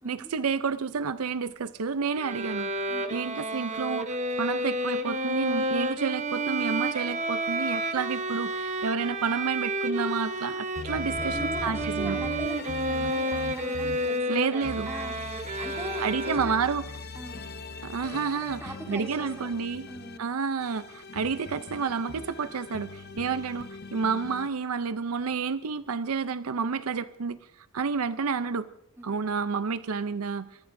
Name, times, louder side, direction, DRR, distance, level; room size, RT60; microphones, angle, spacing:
voice 1, 0.0-2.7 3.1-12.2 14.3-14.9 16.0-16.8 17.8-19.9 20.2-27.4 27.7-28.7 29.0-30.5, right 5 dB, 80° right, 13 dB, 0.5 m, -30 dB
Bowed string instrument, 2.1-16.8, right 1 dB, 35° right, 0.9 m, -31 dB
sound 1, 10.8-14.2 14.6-20.2 20.6-24.5, left 3 dB, 45° left, 0.8 m, -41 dB
voice 2, 11.2-16.5 17.1-17.4 18.3-19.5 19.9-20.3 29.0-29.2, right 1 dB, 10° right, 1 dB, 3.1 m, -41 dB
25.5 x 20.5 x 2.6 m, 0.80 s
head